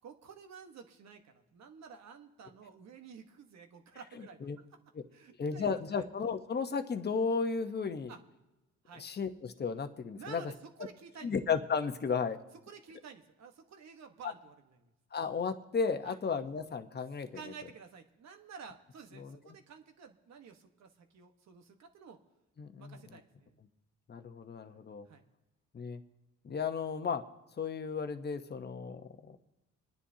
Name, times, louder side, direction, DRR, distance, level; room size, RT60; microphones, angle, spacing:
voice 1, 0.0-4.5 5.1-6.0 8.1-8.2 8.8-9.0 10.1-11.3 12.7-14.5 14.8-14.9 16.0-16.2 17.3-22.2 22.8-23.6 24.6-25.2, right 6 dB, 65° right, 5 dB, 1.3 m, -52 dB
voice 2, 4.2-4.6 4.9-5.0 5.4-8.1 9.0-10.5 11.2-12.4 14.2-14.3 15.1-17.3 19.2-19.4 22.6-23.2 24.1-25.1 25.7-26.0 26.4-27.2 27.6-29.4, left 5 dB, 35° left, 8 dB, 0.9 m, -34 dB
28.5 x 10.0 x 2.8 m, 1.0 s
cardioid pair, 90°, 30 cm